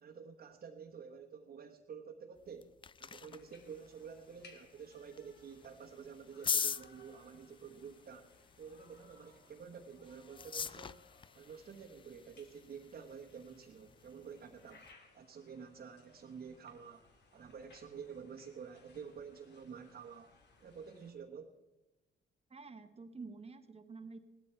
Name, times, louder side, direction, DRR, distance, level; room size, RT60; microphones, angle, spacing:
voice 1, 0.0-2.7 3.0-8.3 8.6-11.0 11.3-14.8 15.1-17.0 17.3-20.3 20.6-21.6, right 6 dB, 50° right, 0 dB, 1.3 m, -50 dB
sound 1, 2.4-14.9, left 6 dB, 25° left, 0.4 m, -44 dB
sound 2, 3.3-21.1, left 3 dB, 60° left, 2.6 m, -65 dB
voice 2, 22.5-24.2, right 4 dB, 30° right, 9 dB, 1.1 m, -49 dB
17.0 x 12.5 x 4.5 m, 1.1 s
cardioid pair, 90°, 20 cm